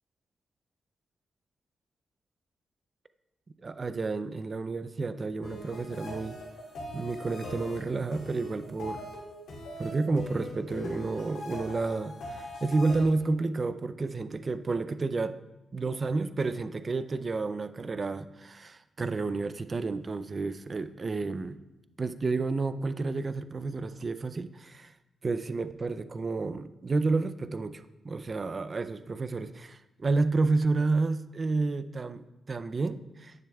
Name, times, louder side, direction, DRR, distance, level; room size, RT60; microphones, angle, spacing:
voice 1, 3.6-6.4 6.9-9.1 9.8-15.4 15.7-21.6 22.0-24.9 25.2-33.3, right 3 dB, 40° right, 13 dB, 0.3 m, -30 dB
sound 1, 5.4-13.0, left 1 dB, 90° left, 2.5 m, -41 dB
10.0 x 6.9 x 2.3 m, 0.99 s
cardioid pair, 70°, 0 cm